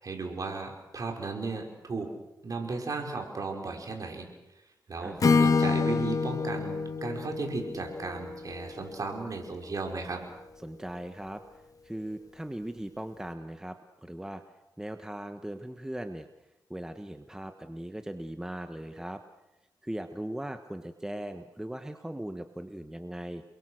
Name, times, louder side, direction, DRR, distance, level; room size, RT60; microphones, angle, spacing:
voice 1, 0.0-2.1 2.4-4.3 4.9-10.3, right 3 dB, 50° right, 3 dB, 5.4 m, -35 dB
Acoustic guitar / Strum, 5.2-9.2, left 5 dB, 50° left, 1.7 m, -27 dB
voice 2, 10.6-14.4 14.8-16.3 16.7-19.2 19.8-23.4, right 1 dB, 10° right, 7 dB, 1.3 m, -39 dB
30.0 x 22.5 x 6.5 m, 0.96 s
cardioid pair, 90°, 8 cm